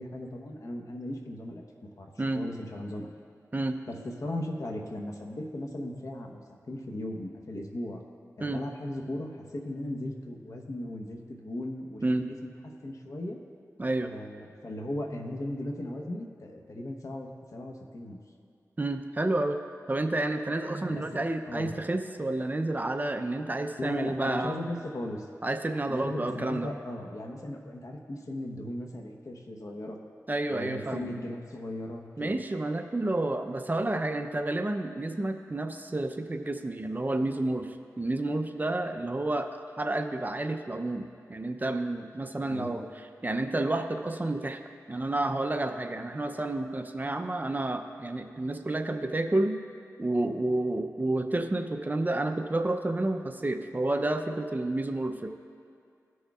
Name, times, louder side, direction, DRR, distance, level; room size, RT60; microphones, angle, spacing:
voice 1, 0.0-1.6 2.0-3.1 3.9-4.0 4.2-8.0 8.4-12.5 12.8-13.4 14.0-18.2 20.9-21.0 21.5-21.7 23.8-25.3 25.9-30.0 30.5-32.4 42.4-42.7, left 1 dB, 60° left, 2 dB, 1.0 m, -37 dB
voice 2, 13.8-14.1 18.8-19.6 19.9-24.6 25.4-26.7 30.3-31.1 32.2-42.8 43.2-44.6 44.9-49.6 50.0-55.3, right 2 dB, 30° right, 6 dB, 0.5 m, -30 dB
17.0 x 6.3 x 2.4 m, 2.4 s
cardioid pair, 55°, 6 cm